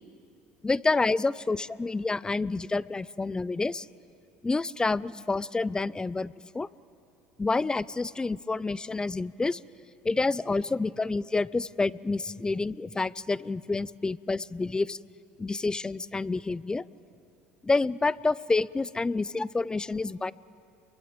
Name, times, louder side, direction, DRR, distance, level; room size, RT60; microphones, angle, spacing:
voice 1, 0.6-3.9 4.4-6.7 7.4-9.6 10.0-15.0 15.4-16.8 17.6-20.3, left 3 dB, 15° left, 20 dB, 0.6 m, -28 dB
29.0 x 23.0 x 9.0 m, 2.5 s
supercardioid pair, 85°, 5 cm